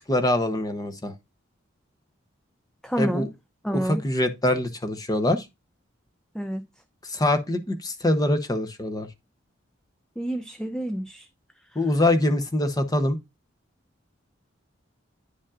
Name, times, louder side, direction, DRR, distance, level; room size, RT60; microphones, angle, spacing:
voice 1, 0.1-1.1 3.0-3.3 3.7-5.5 7.0-9.1 11.7-13.2, left 1 dB, 20° left, 0.8 m, -24 dB
voice 2, 2.8-3.3 3.6-4.0 6.3-6.6 10.2-11.3, equal, 5° left, 0.4 m, -28 dB
9.8 x 5.1 x 2.4 m
head